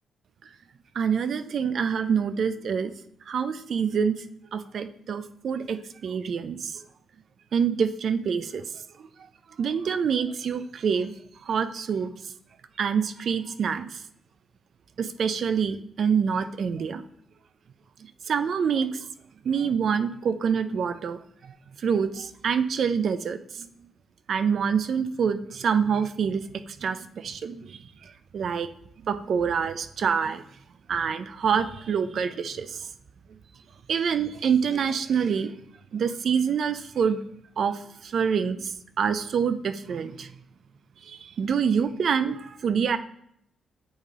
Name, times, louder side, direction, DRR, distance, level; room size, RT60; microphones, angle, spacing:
voice 1, 0.9-2.9 3.3-4.2 4.5-6.8 7.5-9.1 9.6-11.1 11.4-12.3 12.8-14.0 15.0-17.0 18.0-19.1 19.4-23.7 24.3-28.7 29.0-30.4 30.9-32.9 33.9-35.5 35.9-37.2 37.6-40.3 41.0-43.0, right 6 dB, 65° right, 12 dB, 0.4 m, -26 dB
8.7 x 3.3 x 3.6 m, 0.73 s
supercardioid pair, 60°, 0 cm